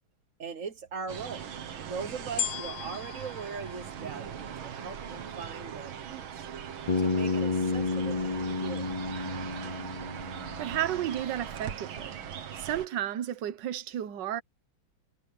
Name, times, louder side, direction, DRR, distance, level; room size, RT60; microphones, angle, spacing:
voice 1, 0.4-1.5 1.8-6.4 7.0-8.9, right 5 dB, 45° right, 1.5 m, -40 dB
sound 1, 1.1-12.9, right 8 dB, 80° right, 2.2 m, -40 dB
sound 2, 2.4-4.8 5.4-5.5, left 9 dB, 90° left, 1.9 m, -37 dB
Bass guitar, 6.9-10.9, left 3 dB, 45° left, 0.4 m, -31 dB
voice 2, 10.6-12.2 12.6-14.4, right 11 dB, 65° right, 1.6 m, -32 dB
omnidirectional pair, 2.2 m